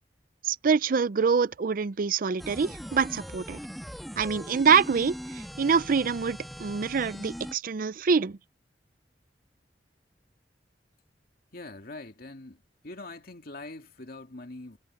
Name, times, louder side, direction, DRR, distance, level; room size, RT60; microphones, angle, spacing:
voice 1, 0.4-3.6 4.2-8.4, right 5 dB, 50° right, 0.5 m, -25 dB
sound 1, 2.4-7.5, equal, ahead, 1.4 m, -40 dB
voice 2, 11.5-14.8, left 2 dB, 55° left, 2.5 m, -43 dB
head